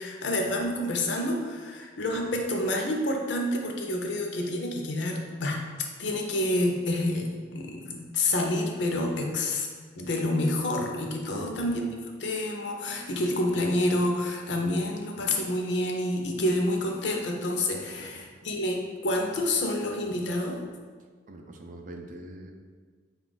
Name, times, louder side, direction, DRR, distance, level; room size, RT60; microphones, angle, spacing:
voice 1, 0.0-9.7 10.0-11.9 12.2-20.6, left 1 dB, 70° left, 1 dB, 0.6 m, -28 dB
voice 2, 11.3-11.7 17.7-18.3 21.3-22.5, right 2 dB, 45° right, 4 dB, 0.4 m, -44 dB
4.2 x 2.4 x 3.8 m, 1.5 s
head